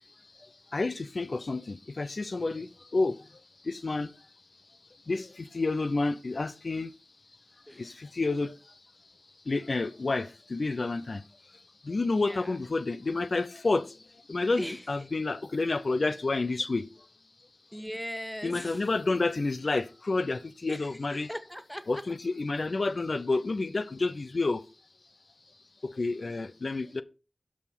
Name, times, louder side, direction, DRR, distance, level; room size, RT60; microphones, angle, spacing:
voice 1, 0.7-3.2 3.7-4.1 5.1-6.9 7.8-8.5 9.5-11.2 11.9-13.9 14.3-16.9 18.4-21.3 21.9-24.6 25.8-27.0, left 3 dB, 70° left, 0.6 m, -29 dB
voice 2, 7.7-8.0 12.1-12.6 14.6-14.8 17.7-18.8 19.1-19.2 20.7-20.9 21.3-22.0, equal, 5° left, 1.4 m, -39 dB
12.5 x 5.0 x 5.6 m
wide cardioid pair, 60°, 0 cm